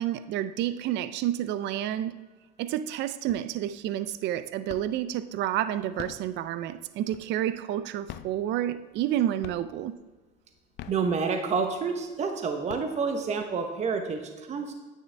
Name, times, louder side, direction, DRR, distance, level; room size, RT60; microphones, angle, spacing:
voice 1, 0.0-2.1 2.6-9.9, right 12 dB, 55° right, 13 dB, 0.5 m, -30 dB
sound 1, 3.3-3.8 4.1-5.1 5.8-7.6 8.0-9.1 9.4-10.0 10.6-11.6 12.1-12.2 12.5-13.4, left 11 dB, 55° left, 0.5 m, -44 dB
voice 2, 10.9-14.8, right 5 dB, 30° right, 5 dB, 1.0 m, -29 dB
10.0 x 9.4 x 3.4 m, 1.3 s
cardioid pair, 120°, 21 cm